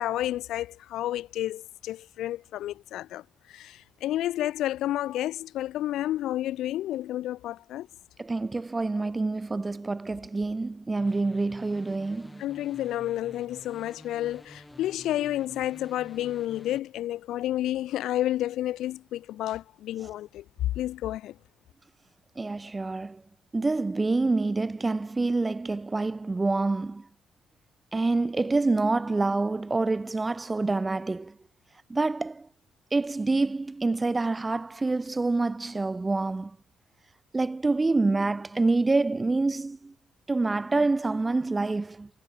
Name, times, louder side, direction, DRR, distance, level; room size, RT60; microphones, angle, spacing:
voice 1, 0.0-3.2 3.5-7.9 12.4-21.3, left 13 dB, 85° left, 0.9 m, -30 dB
voice 2, 8.2-12.4 22.4-23.2 23.5-27.0 27.9-31.3 31.9-32.5 32.9-36.5 37.3-39.9 40.3-42.1, right 3 dB, 20° right, 1.1 m, -27 dB
sound 1, 11.0-16.8, left 1 dB, 10° left, 5.9 m, -50 dB
cardioid pair, 90°, 0 cm